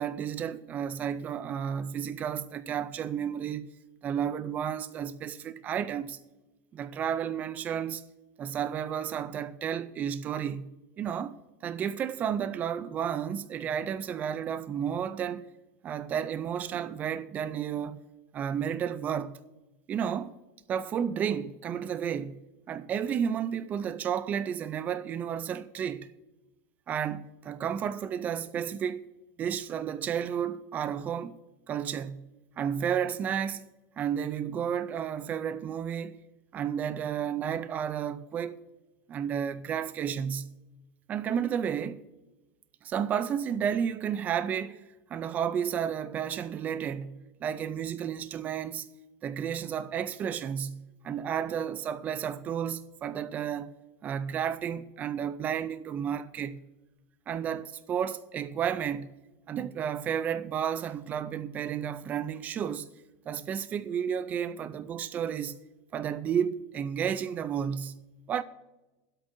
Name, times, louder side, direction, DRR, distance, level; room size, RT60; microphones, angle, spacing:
voice 1, 0.0-3.7 4.0-6.2 6.7-8.0 8.4-10.7 11.0-11.3 11.6-15.4 15.8-18.0 18.3-19.4 19.9-20.3 20.7-22.4 22.7-26.1 26.9-29.0 29.4-31.3 31.7-32.2 32.6-33.6 34.0-36.2 36.5-38.6 39.1-40.5 41.1-42.0 42.8-44.8 45.1-48.9 49.2-53.7 54.0-56.6 57.3-59.1 59.5-62.9 63.3-65.6 65.9-68.0 68.3-68.4, right 8 dB, 20° right, 0.3 m, -32 dB
23.0 x 8.2 x 2.6 m
supercardioid pair, 170°, 8 cm